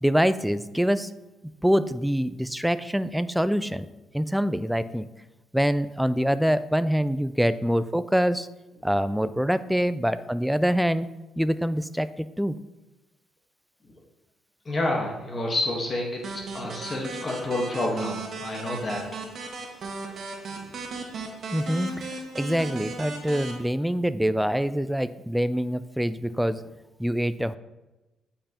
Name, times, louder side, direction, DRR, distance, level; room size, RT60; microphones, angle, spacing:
voice 1, 0.0-1.1 1.6-3.9 4.1-5.1 5.5-8.5 8.8-11.1 11.4-12.5 21.5-22.1 22.4-26.6 27.0-27.6, equal, ahead, 14 dB, 0.3 m, -25 dB
voice 2, 14.6-19.0 20.5-20.7, left 1 dB, 35° left, 0 dB, 1.3 m, -29 dB
sound 1, 16.2-23.5, right 3 dB, 55° right, 1.4 m, -36 dB
8.6 x 5.4 x 2.9 m, 1.0 s
cardioid pair, 90°, 0 cm